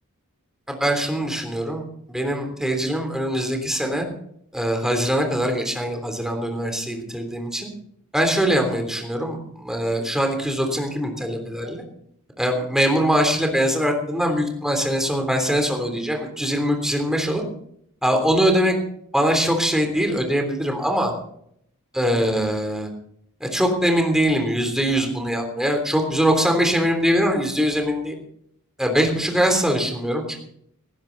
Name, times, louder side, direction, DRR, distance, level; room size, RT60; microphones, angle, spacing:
voice 1, 0.7-1.8 2.1-4.1 4.5-7.7 8.1-11.8 12.4-17.4 18.0-18.7 19.1-21.1 21.9-22.9 23.4-28.2 28.8-30.4, equal, ahead, 3 dB, 3.3 m, -22 dB
18.0 x 15.0 x 4.1 m, 0.69 s
head